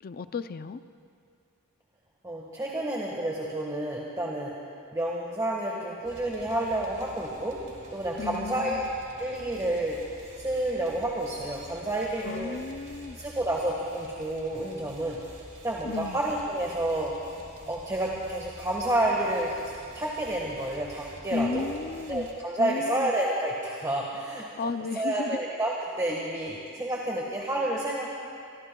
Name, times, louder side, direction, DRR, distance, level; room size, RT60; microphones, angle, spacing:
voice 1, 0.0-0.8 8.2-8.9 12.2-13.2 15.8-16.2 21.3-22.3 22.6-23.1 24.6-25.4, left 4 dB, 40° left, 12 dB, 0.4 m, -33 dB
voice 2, 2.2-4.5 4.9-7.6 7.9-8.8 9.2-10.0 10.4-12.6 13.1-15.2 15.6-17.1 17.7-19.6 19.9-21.7 22.1-24.5 24.9-28.1, right 1 dB, 15° right, -3 dB, 1.4 m, -29 dB
sound 1, 6.0-22.3, right 1 dB, 35° right, 2.5 m, -49 dB
25.5 x 24.0 x 2.3 m, 2.4 s
head